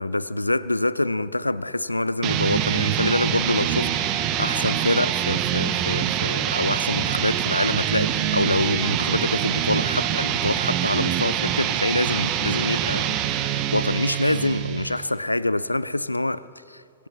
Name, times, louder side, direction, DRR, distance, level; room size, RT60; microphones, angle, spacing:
voice 1, 0.0-17.1, left 2 dB, 85° left, 0.3 m, -26 dB
sound 1, 2.2-15.1, right 10 dB, 40° right, 0.9 m, -25 dB
25.5 x 16.0 x 3.0 m
figure-of-eight pair, 90°, 0 cm